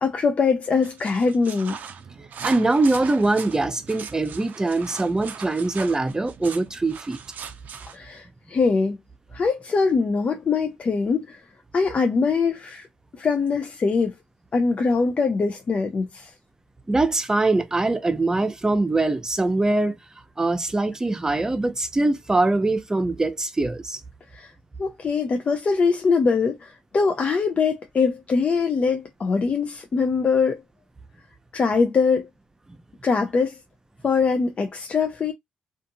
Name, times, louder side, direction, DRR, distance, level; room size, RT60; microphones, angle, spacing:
voice 1, 0.0-1.8 7.9-9.0 9.3-11.4 11.7-12.9 13.1-14.2 14.5-16.3 24.3-24.5 24.8-30.6 31.5-32.3 33.0-33.6 34.0-35.3, left 4 dB, 45° left, 0.5 m, -22 dB
sound 1, 0.8-8.0, right 7 dB, 65° right, 0.4 m, -39 dB
voice 2, 2.4-7.2 16.9-20.0 20.4-24.0 32.7-32.8, right 2 dB, 20° right, 0.6 m, -23 dB
2.6 x 2.5 x 2.6 m
supercardioid pair, 55°, 3 cm